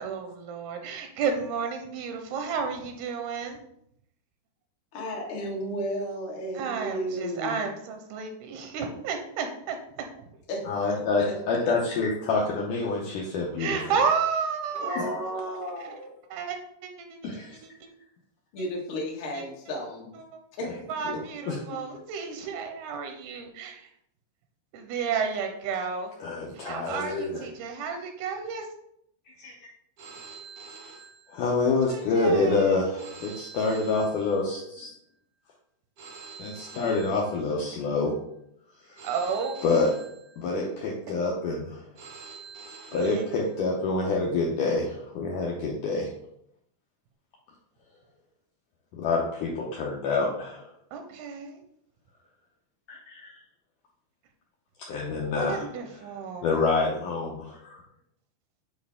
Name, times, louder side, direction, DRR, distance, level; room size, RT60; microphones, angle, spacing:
voice 1, 0.0-3.6 6.5-10.1 13.6-15.2 16.3-16.9 19.3-19.4 20.9-23.9 24.7-26.1 26.5-28.7 31.9-32.8 39.0-39.5 42.9-43.2 50.9-51.6 55.2-56.6, right 6 dB, 85° right, 5 dB, 2.7 m, -32 dB
voice 2, 4.9-7.6 10.5-10.6 11.2-11.3 11.7-11.8 14.7-16.1 18.5-20.2 20.6-20.7, equal, 60° left, -2 dB, 1.3 m, -33 dB
voice 3, 10.7-14.0 14.9-15.1 17.2-17.6 20.6-20.7 21.1-21.2 21.5-21.8 26.2-27.5 29.4-29.5 31.3-34.9 36.4-38.1 38.8-39.0 39.6-39.9 40.4-41.8 42.9-46.1 48.9-50.7 52.9-53.4 54.8-55.7 56.4-57.8, left 3 dB, 75° left, -3 dB, 1.9 m, -27 dB
Telephone, 30.0-31.8 33.0-34.8 36.0-37.8 39.0-40.8 42.0-43.8, right 5 dB, 60° right, 1.5 m, -47 dB
8.0 x 4.4 x 3.5 m, 0.74 s
omnidirectional pair, 4.6 m